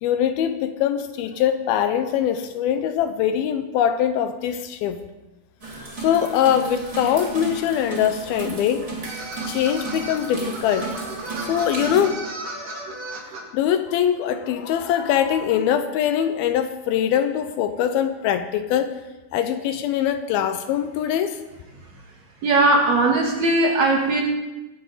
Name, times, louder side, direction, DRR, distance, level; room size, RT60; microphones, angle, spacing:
voice 1, 0.0-5.0 6.0-8.9 9.5-10.9 11.4-12.2 13.5-18.9 19.3-21.4, left 9 dB, 80° left, 9 dB, 2.4 m, -22 dB
sound 1, 5.6-12.1, right 3 dB, 20° right, 2.8 m, -34 dB
sound 2, 9.0-13.4, right 2 dB, 90° right, 4.2 m, -34 dB
voice 2, 22.4-24.2, right 2 dB, 60° right, 0 dB, 2.2 m, -18 dB
22.0 x 8.5 x 4.0 m, 1.1 s
omnidirectional pair, 4.6 m